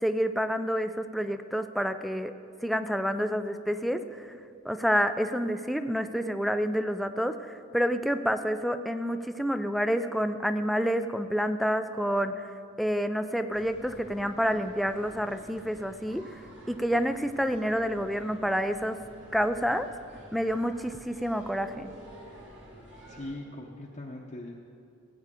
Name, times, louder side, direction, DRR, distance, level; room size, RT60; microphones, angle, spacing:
voice 1, 0.0-2.3 2.6-4.3 4.6-12.5 12.8-16.2 16.7-19.0 19.3-19.9 20.3-21.9, equal, ahead, 9 dB, 0.3 m, -28 dB
sound 1, 13.5-23.3, right 1 dB, 60° right, 2.4 m, -50 dB
voice 2, 23.1-24.7, left 1 dB, 30° left, -3 dB, 0.8 m, -41 dB
17.0 x 8.7 x 3.7 m, 2.6 s
head